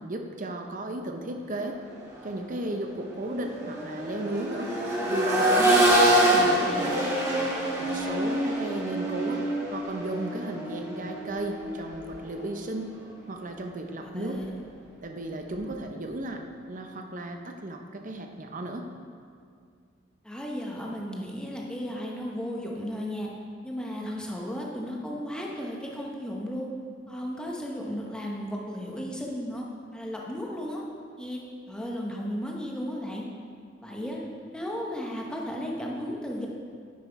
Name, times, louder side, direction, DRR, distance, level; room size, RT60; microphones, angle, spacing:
voice 1, 0.0-1.8 2.2-4.7 5.1-7.0 7.8-9.4 9.7-12.9 13.3-14.4 15.0-18.9, right 1 dB, 45° right, 4 dB, 0.7 m, -35 dB
Accelerating revving vroom, 2.0-2.2 2.6-12.5 14.2-14.3, right 1 dB, 15° right, 1.8 m, -26 dB
voice 2, 5.9-6.8 14.0-14.5 20.2-23.3 23.6-26.7 27.1-29.7 29.9-30.8 31.2-31.4 31.7-33.2 33.8-34.2 34.5-36.5, equal, 5° left, -2 dB, 1.0 m, -34 dB
9.5 x 5.9 x 4.6 m, 2.2 s
head